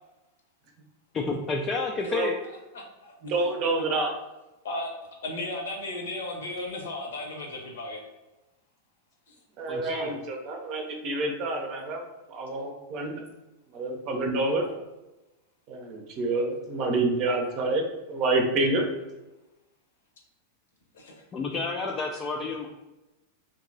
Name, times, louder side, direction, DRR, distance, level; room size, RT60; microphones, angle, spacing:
voice 1, 1.1-2.3 9.7-10.1 21.3-22.7, left 3 dB, 25° left, 0 dB, 0.4 m, -30 dB
voice 2, 2.5-3.1 3.4-3.5 4.6-8.0 9.3-9.4 20.9-21.2, left 2 dB, 60° left, 2 dB, 0.8 m, -35 dB
voice 3, 3.2-4.1 9.6-12.0 12.3-13.1 13.7-14.7 15.7-18.9, right 2 dB, 40° right, 3 dB, 0.7 m, -28 dB
2.9 x 2.7 x 3.9 m, 1.0 s
figure-of-eight pair, 90°, 0 cm